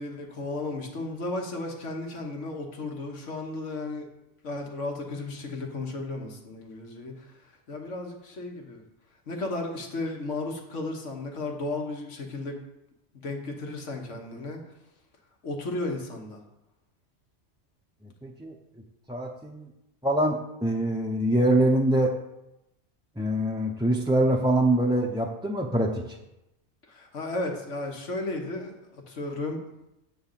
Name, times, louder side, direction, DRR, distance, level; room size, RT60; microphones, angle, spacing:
voice 1, 0.0-4.1 4.4-8.8 9.3-12.6 13.1-14.6 15.4-16.4 26.9-29.6, left 2 dB, 85° left, 2 dB, 1.7 m, -34 dB
voice 2, 18.2-18.6 19.1-19.7 20.0-22.1 23.2-26.0, right 1 dB, 5° right, -1 dB, 0.5 m, -24 dB
10.0 x 3.9 x 7.3 m, 0.90 s
omnidirectional pair, 1.2 m